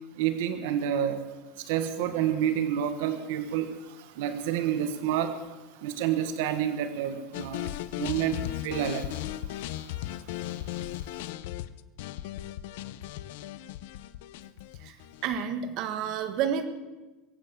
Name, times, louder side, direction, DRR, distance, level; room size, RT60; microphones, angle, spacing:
voice 1, 0.1-1.2 1.6-11.3, right 9 dB, 75° right, 9 dB, 1.3 m, -30 dB
sound 1, 7.3-15.4, left 14 dB, 80° left, 0.7 m, -37 dB
voice 2, 15.2-16.7, right 8 dB, 50° right, 8 dB, 1.4 m, -30 dB
22.5 x 9.2 x 6.8 m, 1.2 s
supercardioid pair, 155°, 0 cm